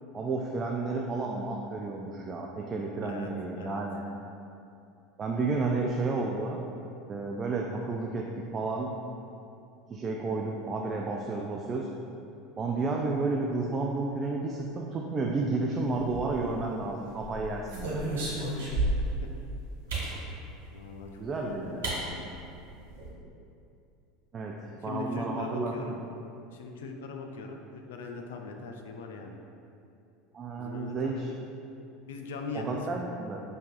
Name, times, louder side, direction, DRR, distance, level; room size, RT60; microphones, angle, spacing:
voice 1, 0.1-4.0 5.2-6.6 7.1-8.9 9.9-11.9 12.6-18.1 21.2-22.0 24.3-26.0 30.3-31.3 32.5-33.4, right 3 dB, 30° right, 0 dB, 0.3 m, -31 dB
voice 2, 3.0-3.8 18.4-18.5 20.7-22.2 24.7-26.0 26.5-29.3 30.6-31.1 32.1-33.0, left 3 dB, 65° left, 3 dB, 0.4 m, -40 dB
sound 1, 16.0-16.7 17.2-19.2 19.9-20.2 21.3-21.4 21.8-22.0 22.3-22.4 22.7-23.1, right 1 dB, 70° right, 1.3 m, -32 dB
6.4 x 2.7 x 2.3 m, 2.6 s
figure-of-eight pair, 75°, 0 cm